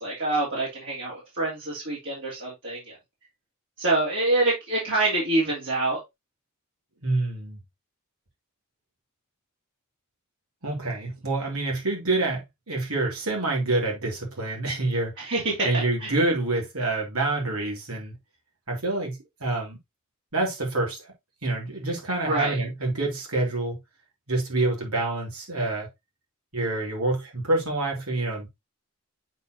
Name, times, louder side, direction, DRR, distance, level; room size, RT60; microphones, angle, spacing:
voice 1, 0.0-3.0 3.8-6.0 15.2-16.1 22.2-22.6, right 2 dB, 60° right, 2.9 m, -26 dB
voice 2, 7.0-7.6 10.6-15.3 15.6-18.1 18.7-19.8 20.3-21.1 21.4-23.8 24.3-25.9 26.5-28.5, right 2 dB, 75° right, 3.1 m, -27 dB
8.0 x 4.5 x 3.0 m
head